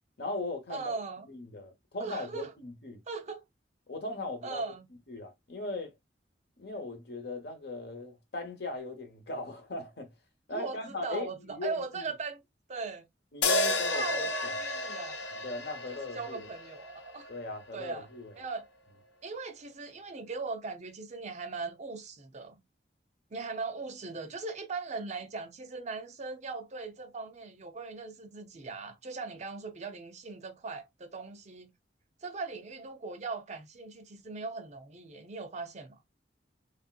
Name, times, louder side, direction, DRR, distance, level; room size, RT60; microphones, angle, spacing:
voice 1, 0.2-1.0 1.3-3.0 3.9-4.6 5.1-5.9 6.6-10.1 10.5-12.1 13.3-14.6 15.3-16.5 17.3-18.3, left 2 dB, 65° left, 1.0 m, -39 dB
voice 2, 0.7-1.3 2.0-2.5 3.1-3.4 4.4-4.9 10.5-12.4 12.7-13.1 13.7-15.2 16.1-17.3 17.7-18.1 18.4-18.7 19.2-22.6 23.3-31.7 32.2-36.0, right 4 dB, 40° right, 0.6 m, -39 dB
sound 1, 13.4-17.7, left 2 dB, 85° left, 0.7 m, -32 dB
3.5 x 2.5 x 2.3 m
head